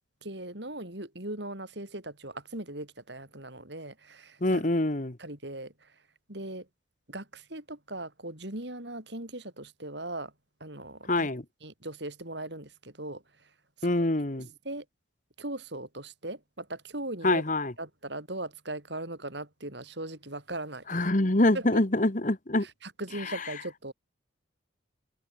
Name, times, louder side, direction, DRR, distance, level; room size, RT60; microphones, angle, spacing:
voice 1, 0.2-4.6 5.2-6.0 6.3-6.7 7.1-10.3 10.6-11.3 11.6-13.5 13.8-13.9 14.4-14.9 15.4-17.4 17.8-21.0 21.5-21.9 22.6-23.9, right 1 dB, 60° right, 5.3 m, -39 dB
voice 2, 4.4-5.2 11.1-11.4 13.8-14.5 17.2-17.7 20.9-22.7, left 1 dB, 40° left, 1.4 m, -25 dB
head